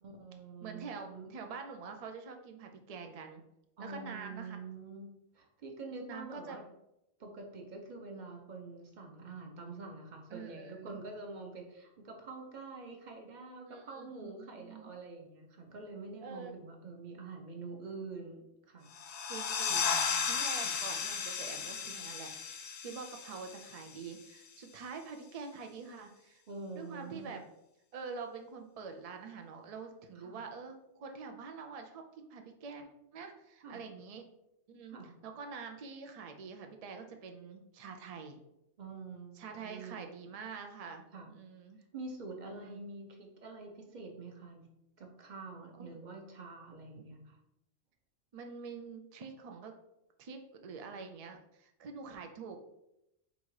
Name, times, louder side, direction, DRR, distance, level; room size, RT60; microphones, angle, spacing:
voice 1, 0.0-1.3 3.8-6.6 7.2-18.9 19.7-20.3 20.6-20.8 26.5-27.4 30.2-30.4 33.6-33.8 34.9-35.1 38.8-40.0 41.1-41.3 41.9-44.6 45.0-47.4, right 3 dB, 45° right, 2 dB, 0.8 m, -46 dB
voice 2, 0.6-3.4 3.8-4.6 6.1-6.6 10.3-11.0 13.7-14.9 16.2-16.5 19.3-19.8 20.2-26.4 26.7-27.4 27.9-34.2 34.7-35.0 35.2-38.4 39.4-41.8 42.5-42.9 45.8-46.0 47.0-47.1 48.3-49.7 50.2-52.6, right 5 dB, 75° right, 5 dB, 0.3 m, -46 dB
sound 1, 18.9-24.3, left 6 dB, 70° left, 0.8 m, -35 dB
4.0 x 2.4 x 4.6 m, 0.87 s
omnidirectional pair, 1.2 m